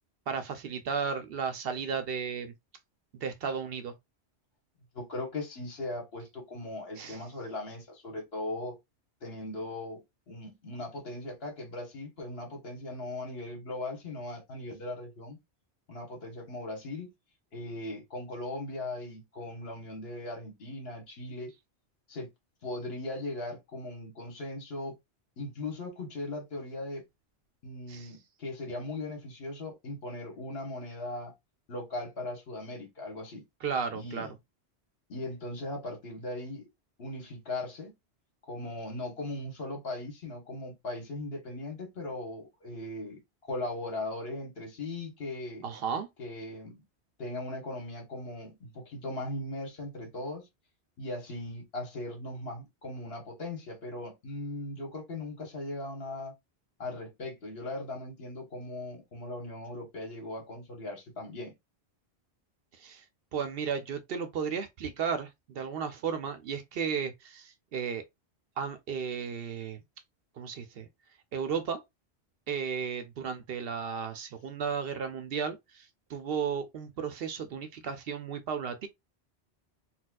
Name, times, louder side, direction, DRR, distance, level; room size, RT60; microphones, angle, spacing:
voice 1, 0.3-2.5 3.2-3.9 7.0-7.2 27.9-28.1 33.6-34.3 45.6-46.1 62.8-63.0 63.3-68.0 68.6-69.8 70.4-70.9 71.3-71.8 72.5-78.9, right 6 dB, 65° right, 0.7 m, -34 dB
voice 2, 4.9-8.8 9.2-15.4 15.9-17.1 17.5-21.5 22.1-22.3 22.6-24.9 25.4-27.0 27.6-31.3 31.7-33.4 33.9-34.3 35.1-36.7 37.0-37.9 38.5-43.2 43.5-45.6 46.2-46.8 47.2-50.5 51.0-56.3 56.8-61.5, left 2 dB, 65° left, 1.4 m, -38 dB
4.2 x 2.3 x 2.2 m
omnidirectional pair, 1.1 m